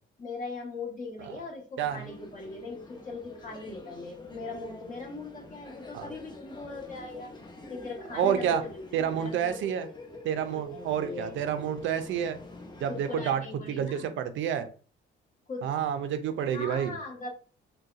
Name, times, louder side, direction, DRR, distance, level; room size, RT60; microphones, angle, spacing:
voice 1, 0.2-7.3 7.7-9.8 10.7-11.4 12.9-14.1 15.5-15.7 16.5-17.3, left 3 dB, 40° left, 0 dB, 1.3 m, -40 dB
sound 1, 1.8-13.3, left 2 dB, 20° left, 0.8 m, -46 dB
voice 2, 8.1-8.6 8.9-9.9 10.2-12.4 12.8-13.4 13.7-14.7 15.6-16.9, right 8 dB, 75° right, 10 dB, 0.5 m, -29 dB
3.9 x 2.2 x 2.4 m, 0.39 s
cardioid pair, 90°, 20 cm